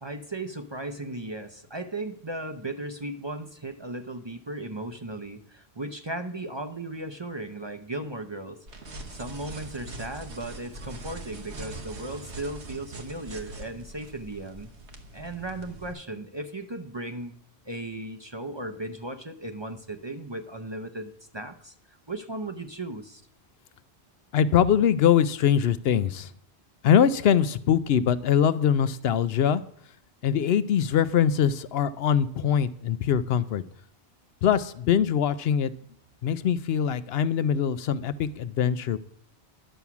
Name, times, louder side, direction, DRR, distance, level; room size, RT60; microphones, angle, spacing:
voice 1, 0.0-8.7 9.1-14.7 15.1-17.3 17.6-23.2, right 2 dB, 30° right, 6 dB, 0.7 m, -36 dB
sound 1, 8.7-15.9, right 2 dB, 85° right, 1.7 m, -42 dB
voice 2, 24.3-26.3 26.8-29.6 30.2-33.6 34.4-35.7 36.2-39.0, left 8 dB, 70° left, 14 dB, 0.8 m, -23 dB
11.5 x 7.0 x 5.9 m, 0.66 s
omnidirectional pair, 1.1 m